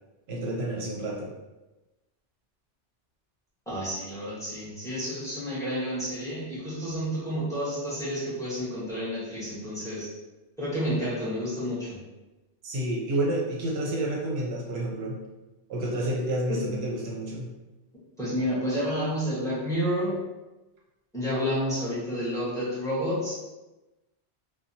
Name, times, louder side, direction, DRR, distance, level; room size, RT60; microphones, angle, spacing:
voice 1, 0.3-1.3 12.6-15.2 15.7-17.5, right 1 dB, 65° right, -2 dB, 0.8 m, -29 dB
voice 2, 3.7-10.1 10.6-12.0 16.5-16.8 18.2-20.2 21.1-23.3, equal, 5° left, -9 dB, 0.9 m, -30 dB
2.7 x 2.2 x 2.5 m, 1.1 s
omnidirectional pair, 1.2 m